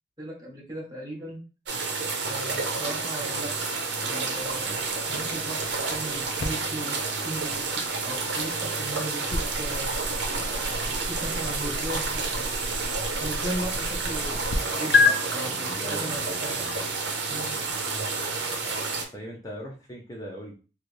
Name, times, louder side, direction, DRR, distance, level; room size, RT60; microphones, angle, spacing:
voice 1, 0.2-1.4 2.3-3.5 4.0-4.7 5.1-10.0 10.8-14.4 14.7-16.6 17.3-17.5, right 1 dB, 20° right, -1 dB, 1.0 m, -37 dB
sound 1, 1.7-19.0, right 4 dB, 70° right, 0.8 m, -30 dB
sound 2, 6.4-14.6 14.9-15.1, left 4 dB, 60° left, 0.5 m, -30 dB
voice 2, 15.0-16.9 19.1-20.5, equal, 20° left, -2 dB, 0.6 m, -40 dB
3.1 x 2.6 x 3.1 m, 0.34 s
head